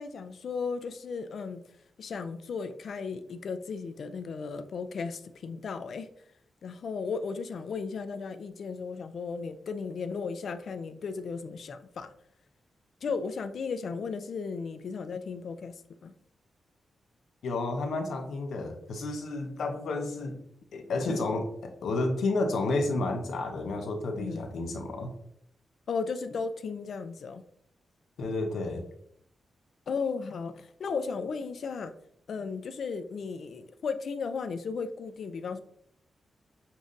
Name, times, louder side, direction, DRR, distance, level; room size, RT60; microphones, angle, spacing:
voice 1, 0.0-1.6 2.0-6.1 6.6-12.1 13.0-16.1 21.1-21.2 24.1-24.4 25.9-27.4 29.9-31.9 32.3-35.6, left 5 dB, 65° left, 10 dB, 0.4 m, -35 dB
voice 2, 17.4-20.4 20.7-25.1 28.2-28.8, left 2 dB, 85° left, 4 dB, 0.8 m, -31 dB
6.9 x 2.6 x 2.5 m, 0.71 s
wide cardioid pair, 120°, 0 cm